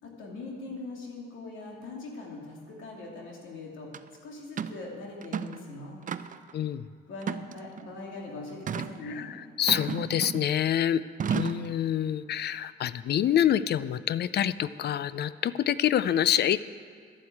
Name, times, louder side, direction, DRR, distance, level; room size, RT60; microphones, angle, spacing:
voice 1, 0.0-3.9 4.2-6.0 7.1-9.3, left 2 dB, 80° left, -1 dB, 2.7 m, -41 dB
sound 1, 3.9-4.0 4.6-4.8 5.2-5.6 6.1-6.5 7.2-7.9 8.7-8.9 9.7-10.5 11.2-11.7, right 7 dB, 40° right, 0.5 m, -33 dB
voice 2, 6.5-6.9 9.1-11.0 11.3-16.7, left 10 dB, 55° left, 16 dB, 0.5 m, -27 dB
11.5 x 7.8 x 8.5 m, 2.2 s
cardioid pair, 90°, 20 cm